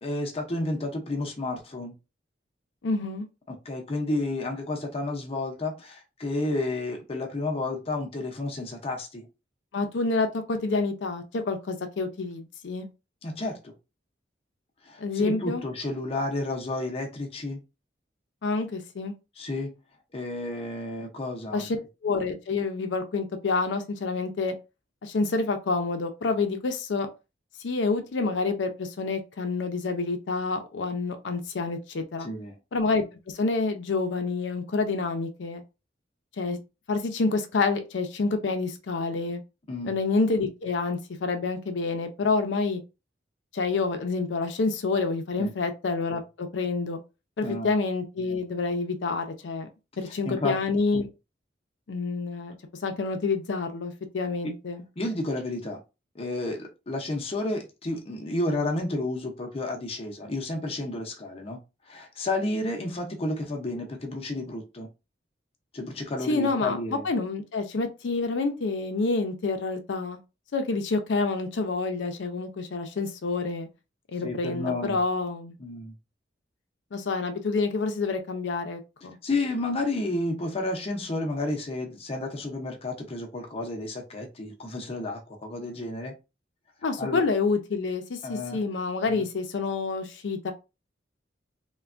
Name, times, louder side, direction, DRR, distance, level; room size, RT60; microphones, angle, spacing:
voice 1, 0.0-1.9 3.5-9.3 13.2-13.7 14.9-17.6 19.4-19.7 20.1-21.7 32.2-32.5 39.7-39.9 45.4-45.5 47.4-47.7 50.2-50.6 55.0-55.8 56.2-61.6 61.9-64.9 65.7-67.0 74.2-75.0 75.6-75.9 79.2-86.1 87.0-87.2 88.2-88.6 89.1-89.2, left 2 dB, 35° left, 0.6 m, -31 dB
voice 2, 2.8-3.3 9.7-12.9 15.0-15.6 18.4-19.1 21.5-24.5 25.0-27.1 27.6-32.3 32.7-35.6 36.4-36.6 36.9-39.4 39.8-42.8 43.5-47.0 47.4-49.7 50.0-51.1 51.9-52.6 52.8-54.8 66.2-70.2 70.5-73.7 74.1-75.5 76.9-79.2 86.8-90.5, left 3 dB, 85° left, 0.5 m, -28 dB
3.3 x 2.2 x 2.4 m
head